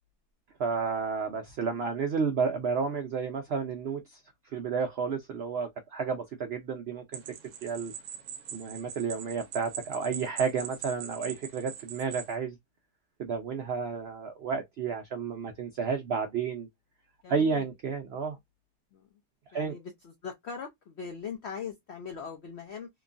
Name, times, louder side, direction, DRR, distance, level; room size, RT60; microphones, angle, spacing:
voice 1, 0.6-7.2 7.6-7.9 8.5-12.6 13.2-16.7 17.3-18.4 19.5-19.8, right 5 dB, 85° right, 0.5 m, -31 dB
sound 1, 7.1-12.4, right 8 dB, 70° right, 1.0 m, -42 dB
voice 2, 17.2-17.6 18.9-19.2 19.5-22.9, left 6 dB, 75° left, 0.6 m, -40 dB
3.0 x 2.2 x 2.4 m
omnidirectional pair, 1.7 m